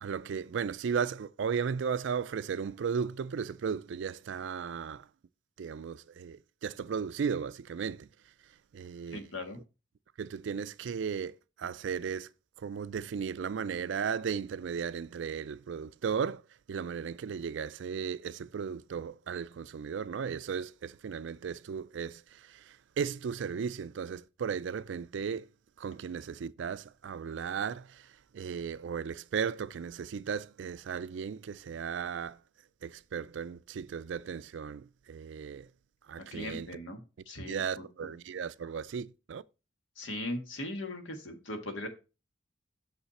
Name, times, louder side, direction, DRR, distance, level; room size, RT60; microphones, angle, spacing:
voice 1, 0.0-5.1 5.6-8.1 8.7-9.2 10.2-12.3 12.6-16.4 16.7-25.5 25.8-32.4 32.8-35.7 36.1-36.7 37.5-39.4, right 6 dB, 70° right, 0.4 m, -35 dB
voice 2, 9.1-9.6 36.3-37.0 37.2-37.8 40.0-41.9, left 1 dB, 80° left, 1.6 m, -39 dB
6.6 x 5.6 x 4.1 m
head